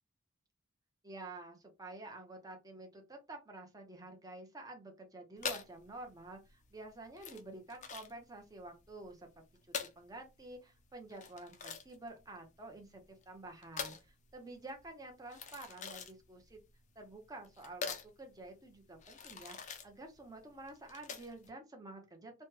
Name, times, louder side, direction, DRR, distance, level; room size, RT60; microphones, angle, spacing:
voice 1, 1.0-9.3 9.7-14.0 14.3-16.6 17.0-22.3, right 2 dB, 20° right, 3 dB, 0.7 m, -50 dB
sound 1, 5.4-21.5, left 6 dB, 35° left, 0.4 m, -45 dB
3.2 x 2.2 x 3.1 m, 0.24 s
head